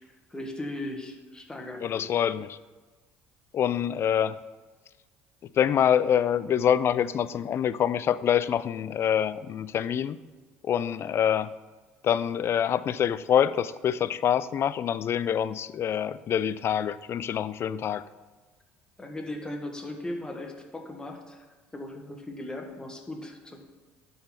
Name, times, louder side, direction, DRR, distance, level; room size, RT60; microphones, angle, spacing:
voice 1, 0.3-2.1 19.0-23.6, left 1 dB, 15° left, 2 dB, 1.6 m, -38 dB
voice 2, 1.8-2.6 3.5-4.4 5.6-10.2 10.6-11.5 12.0-18.0, left 9 dB, 45° left, 16 dB, 0.4 m, -25 dB
11.5 x 4.0 x 4.4 m, 1.3 s
hypercardioid pair, 65°, 6 cm